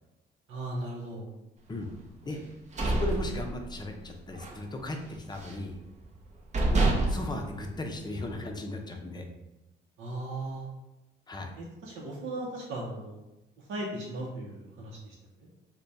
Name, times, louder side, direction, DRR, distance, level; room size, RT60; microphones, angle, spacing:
voice 1, 0.5-1.3 10.0-10.7 11.6-13.1 13.7-15.2 15.4-15.5, right 1 dB, 80° right, -4 dB, 0.7 m, -37 dB
sound 1, 2.4-4.0 4.3-4.6 4.9-5.7 6.2-6.3 6.5-8.4, right 2 dB, 35° right, 0.7 m, -28 dB
voice 2, 2.9-5.8 6.7-9.3 11.3-11.5, left 2 dB, 20° left, 3 dB, 0.6 m, -37 dB
3.3 x 2.2 x 3.9 m, 0.98 s
cardioid pair, 90°, 20 cm